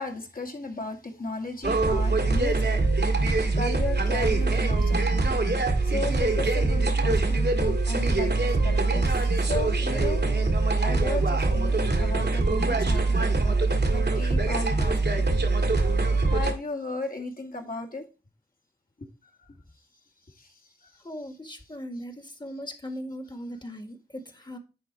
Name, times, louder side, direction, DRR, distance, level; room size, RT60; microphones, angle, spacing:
voice 1, 0.0-2.8 3.5-5.2 5.8-10.2 10.8-15.2 16.3-18.0 19.0-19.1 19.4-19.5 20.4-20.5 20.8-21.4 22.0-22.1, left 2 dB, 50° left, 2 dB, 2.1 m, -36 dB
sound 1, 1.6-16.5, right 3 dB, 65° right, 1.7 m, -23 dB
voice 2, 21.0-22.1 22.4-24.6, equal, 25° left, 7 dB, 1.6 m, -38 dB
10.0 x 4.1 x 4.5 m, 0.31 s
wide cardioid pair, 55°, 18 cm